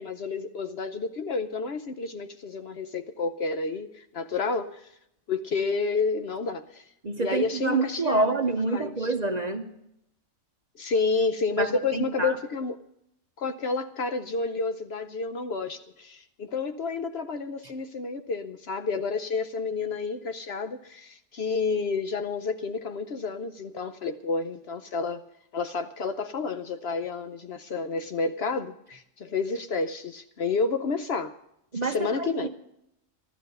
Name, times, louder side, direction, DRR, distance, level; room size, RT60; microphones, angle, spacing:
voice 1, 0.0-4.9 5.3-6.8 7.2-8.3 8.7-9.1 10.8-12.8 13.4-25.2 25.5-31.3 31.7-32.5, left 4 dB, 55° left, 9 dB, 0.9 m, -30 dB
voice 2, 7.0-9.6 11.6-12.4 31.7-32.5, right 3 dB, 35° right, 6 dB, 0.8 m, -27 dB
13.5 x 12.5 x 5.4 m, 0.78 s
omnidirectional pair, 1.4 m